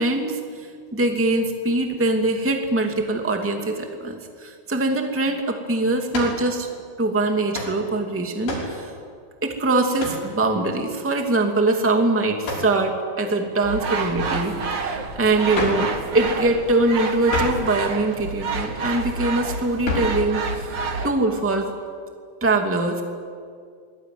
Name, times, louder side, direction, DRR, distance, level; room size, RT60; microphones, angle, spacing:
voice 1, 0.0-6.7 7.0-8.9 9.4-20.7 21.0-21.7 22.4-23.0, right 2 dB, 5° right, 3 dB, 1.2 m, -23 dB
sound 1, 6.1-6.4 7.5-7.8 8.5-8.8 10.0-10.3 12.4-12.8 15.5-15.9 17.3-17.7 19.8-20.2, left 2 dB, 85° left, 8.0 m, -28 dB
sound 2, 13.6-21.1, right 4 dB, 45° right, 1.5 m, -28 dB
26.0 x 20.5 x 9.5 m, 2.1 s
omnidirectional pair, 4.7 m